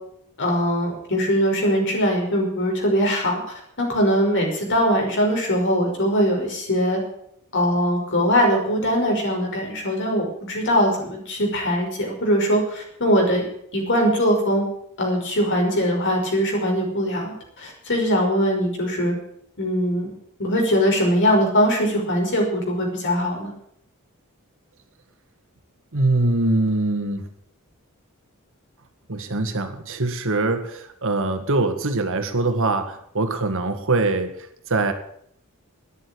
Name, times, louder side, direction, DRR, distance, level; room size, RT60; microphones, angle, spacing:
voice 1, 0.4-3.4 3.8-7.0 7.5-13.5 13.7-14.7 15.0-19.1 19.6-20.1 20.4-23.5, equal, 60° left, 1 dB, 5.8 m, -21 dB
voice 2, 25.9-27.2 29.1-34.3 34.7-34.9, right 2 dB, 65° right, 7 dB, 1.9 m, -23 dB
12.5 x 10.5 x 8.7 m, 0.68 s
head